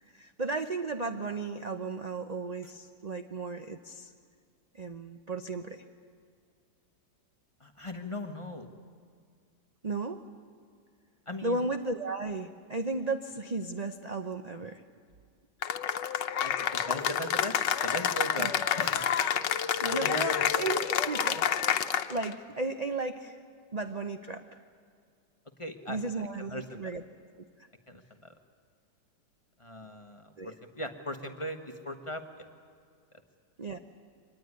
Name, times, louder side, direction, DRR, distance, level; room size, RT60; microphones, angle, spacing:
voice 1, 0.1-4.1 4.7-5.8 9.8-10.2 11.4-14.8 18.4-18.7 19.8-21.5 21.9-23.4 23.7-24.6 25.9-27.0 27.6-27.7 30.4-30.5 33.6-33.8, right 3 dB, 45° right, 7 dB, 0.5 m, -35 dB
voice 2, 7.6-8.7 11.3-11.6 16.4-19.1 19.8-20.5 25.6-26.0 26.4-26.9 27.9-28.3 29.6-32.5, left 1 dB, 20° left, 5 dB, 1.2 m, -39 dB
Cheering / Applause, 15.6-22.3, left 9 dB, 85° left, 1.5 m, -28 dB
24.0 x 19.5 x 9.7 m, 2.1 s
omnidirectional pair, 1.9 m